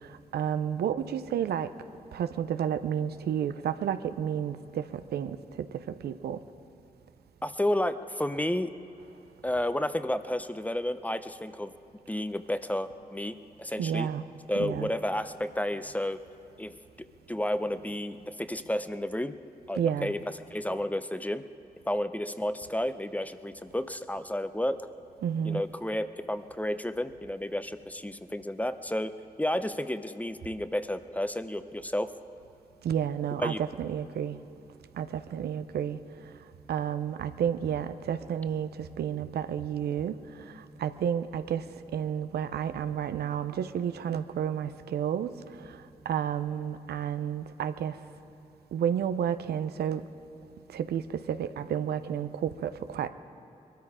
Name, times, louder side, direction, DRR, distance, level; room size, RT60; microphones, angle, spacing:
voice 1, 0.3-1.7 2.1-6.4 13.8-14.2 14.5-14.9 19.7-20.1 25.2-25.6 32.8-34.4 34.9-36.0 36.7-40.2 40.5-41.6 41.9-45.3 45.7-45.8 46.1-48.0 48.7-50.0 50.7-53.1, right 9 dB, 90° right, 0.5 m, -31 dB
voice 2, 7.4-8.7 9.4-11.7 12.1-14.1 14.5-16.2 16.6-19.4 19.7-20.2 20.5-21.4 21.9-24.8 25.4-29.1 29.4-32.1 33.4-33.6, left 1 dB, 10° left, 0.7 m, -31 dB
21.0 x 13.0 x 4.9 m
cardioid pair, 50°, 16 cm